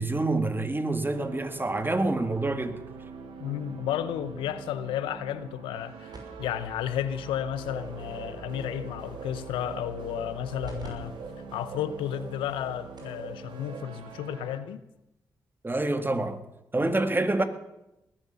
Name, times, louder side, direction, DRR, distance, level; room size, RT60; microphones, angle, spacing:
voice 1, 0.0-2.8 15.6-16.4 16.7-17.4, right 2 dB, 25° right, 1.8 m, -27 dB
sound 1, 1.1-14.6, right 5 dB, 85° right, 1.5 m, -45 dB
voice 2, 3.4-11.1 11.5-14.8, left 10 dB, 90° left, 0.6 m, -33 dB
sound 2, 6.1-10.9 11.2-11.3 12.0-12.1 12.6-12.7 13.0-13.2 14.5-14.6, right 3 dB, 50° right, 6.0 m, -47 dB
sound 3, 7.6-13.8, right 3 dB, 70° right, 4.0 m, -44 dB
20.0 x 8.0 x 6.8 m
supercardioid pair, 45°, 8 cm